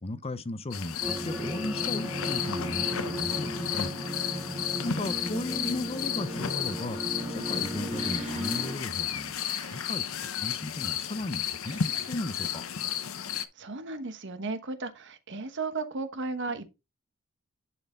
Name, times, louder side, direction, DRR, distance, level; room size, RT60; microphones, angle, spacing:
voice 1, 0.0-3.9 4.8-10.0 10.3-12.6, left 2 dB, 30° left, 0.6 m, -36 dB
sound 1, 0.7-13.5, left 9 dB, 75° left, 0.8 m, -33 dB
sound 2, 1.0-8.8, right 1 dB, 10° right, 0.9 m, -35 dB
sound 3, 7.9-9.0 9.3-10.4 11.6-12.8, right 3 dB, 35° right, 3.1 m, -51 dB
voice 2, 13.3-16.6, right 3 dB, 60° right, 1.2 m, -35 dB
10.5 x 4.3 x 3.8 m
head